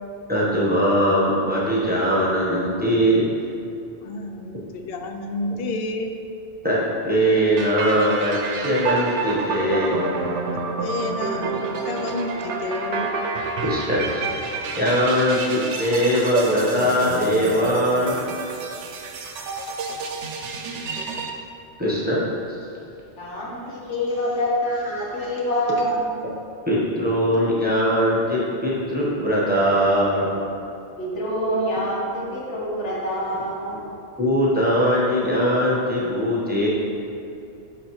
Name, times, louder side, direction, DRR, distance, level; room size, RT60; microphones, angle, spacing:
voice 1, 0.3-3.3 6.6-10.0 13.6-14.2 14.7-18.2 21.8-22.2 22.5-22.6 26.7-30.3 34.2-36.7, equal, 10° right, -7 dB, 1.2 m, -21 dB
voice 2, 4.0-6.1 10.8-13.1, left 2 dB, 65° left, 4 dB, 0.8 m, -30 dB
sound 1, 7.6-21.3, right 4 dB, 85° right, 0.9 m, -29 dB
voice 3, 23.2-26.2 31.0-33.8, equal, 85° left, -4 dB, 1.7 m, -26 dB
11.5 x 4.1 x 3.1 m, 2.6 s
omnidirectional pair, 1.2 m